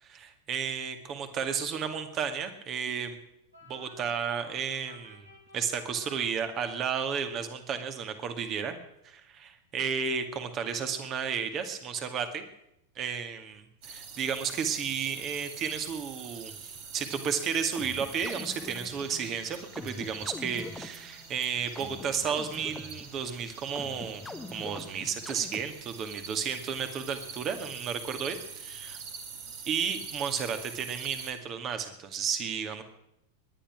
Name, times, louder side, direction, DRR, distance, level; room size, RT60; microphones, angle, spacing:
voice 1, 0.0-3.2 3.7-5.3 5.5-8.8 9.0-12.5 13.0-24.3 24.5-29.0 29.7-32.8, right 7 dB, 30° right, 8 dB, 2.2 m, -33 dB
sound 1, 3.5-7.0, equal, 85° right, 4.1 m, -54 dB
sound 2, 13.8-31.3, right 5 dB, 45° right, 3.1 m, -45 dB
sound 3, 17.8-26.0, left 3 dB, 10° left, 1.0 m, -44 dB
21.5 x 10.5 x 6.1 m, 0.80 s
figure-of-eight pair, 90°, 0 cm